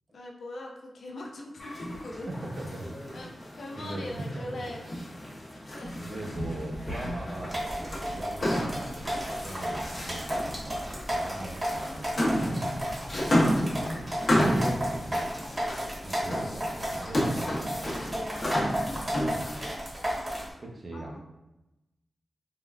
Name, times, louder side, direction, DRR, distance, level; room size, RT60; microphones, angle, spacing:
voice 1, 0.1-2.3 3.1-4.9 5.7-5.9 11.5-12.2 16.5-19.3 20.9-21.2, left 1 dB, 75° left, 1 dB, 0.5 m, -43 dB
sound 1, 1.6-19.8, equal, 50° left, 0.9 m, -32 dB
voice 2, 2.2-2.9 3.8-4.6 6.0-12.7 13.7-15.4 16.0-17.6 20.6-21.2, right 1 dB, 55° right, 0 dB, 0.6 m, -40 dB
sound 2, 7.5-20.5, equal, 30° right, 1.0 m, -33 dB
3.5 x 2.2 x 2.3 m, 0.95 s
cardioid pair, 70°, 0 cm